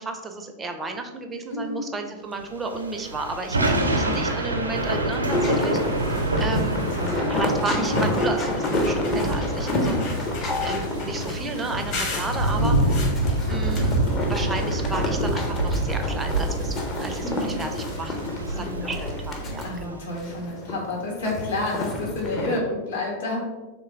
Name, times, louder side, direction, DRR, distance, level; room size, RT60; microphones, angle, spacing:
voice 1, 0.0-5.8 6.4-6.9 7.3-9.9 10.6-12.8 13.5-20.0, right 3 dB, 15° right, 5 dB, 0.5 m, -32 dB
voice 2, 1.5-1.9 3.7-4.3 6.4-7.6 9.7-10.1 12.6-13.0 17.2-17.6 18.5-18.9 19.6-23.5, left 2 dB, 65° left, -2 dB, 1.2 m, -30 dB
Thunder / Rain, 2.6-20.1, right 1 dB, 80° right, 0.6 m, -27 dB
sound 1, 3.9-4.3 4.8-4.9 5.1-5.4 6.6-6.7 7.3-7.4 7.7-9.3 9.7-11.4 11.9-14.7 15.0-16.1 17.0-17.1 17.4-17.5 17.7-17.8, left 3 dB, 40° left, 1.2 m, -36 dB
sound 2, 5.3-19.9 20.1-22.6, left 2 dB, 25° left, 0.6 m, -29 dB
3.3 x 3.0 x 3.5 m, 1.2 s
figure-of-eight pair, 90°, 0 cm